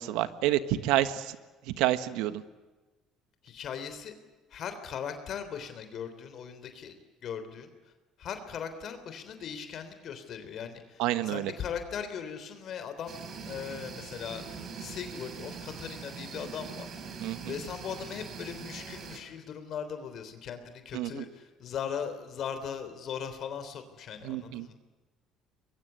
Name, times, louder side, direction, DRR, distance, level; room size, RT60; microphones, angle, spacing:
voice 1, 0.0-1.4 1.7-2.4 11.0-11.5 17.2-17.5 20.9-21.2 24.2-24.7, right 14 dB, 85° right, 11 dB, 1.5 m, -29 dB
voice 2, 3.4-4.2 4.5-7.0 7.2-7.7 8.2-13.2 13.4-14.4 14.8-24.8, left 7 dB, 55° left, 9 dB, 3.4 m, -39 dB
sound 1, 13.1-19.2, right 5 dB, 45° right, 5.4 m, -42 dB
24.0 x 22.5 x 8.2 m, 1.2 s
cardioid pair, 100°, 0 cm